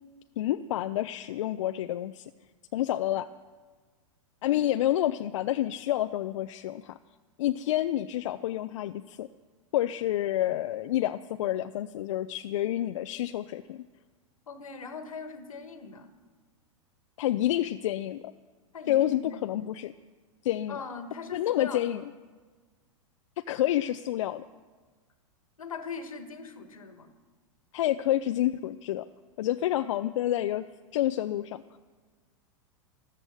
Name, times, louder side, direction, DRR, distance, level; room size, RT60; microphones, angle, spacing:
voice 1, 0.4-2.3 2.7-3.3 4.4-7.0 7.4-9.3 9.7-13.9 17.2-18.3 18.9-19.9 20.4-20.8 21.3-22.0 23.4-24.4 27.7-29.1 29.4-30.7 30.9-31.6, left 13 dB, 65° left, 10 dB, 0.5 m, -28 dB
voice 2, 14.5-16.1 18.7-19.4 20.7-21.9 25.6-27.1, left 5 dB, 85° left, 9 dB, 1.7 m, -41 dB
14.0 x 13.0 x 6.6 m, 1.4 s
hypercardioid pair, 105°, 17 cm